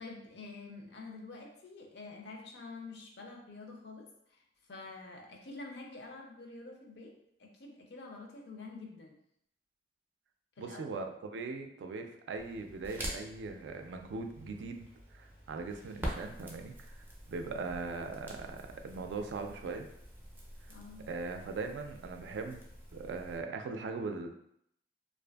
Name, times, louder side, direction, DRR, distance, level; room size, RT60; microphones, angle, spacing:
voice 1, 0.0-4.4 4.7-9.2 10.6-11.0 20.7-21.1, left 3 dB, 70° left, 1 dB, 0.5 m, -48 dB
voice 2, 10.6-19.9 21.1-22.6 22.9-24.3, right 4 dB, 85° right, 5 dB, 0.3 m, -40 dB
Crackle, 12.4-23.4, equal, 10° right, 0.4 m, -46 dB
2.5 x 2.4 x 2.2 m, 0.73 s
head